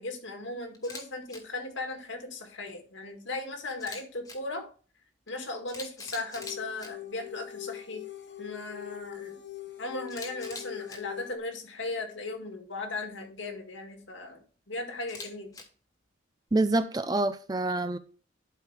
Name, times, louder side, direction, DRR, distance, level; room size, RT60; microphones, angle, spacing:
voice 1, 0.0-4.7 5.3-8.0 8.4-9.4 9.8-15.6, left 2 dB, 75° left, 4 dB, 1.9 m, -37 dB
Camera, 0.7-1.0 1.3-1.4 3.7-4.4 5.3-5.4 5.7-6.9 10.1-11.0 15.0-15.6, left 3 dB, 20° left, 1.2 m, -42 dB
sound 1, 6.3-11.4, left 13 dB, 55° left, 0.8 m, -43 dB
voice 2, 16.5-18.0, right 2 dB, 20° right, 12 dB, 0.4 m, -26 dB
11.5 x 4.8 x 3.3 m, 0.39 s
head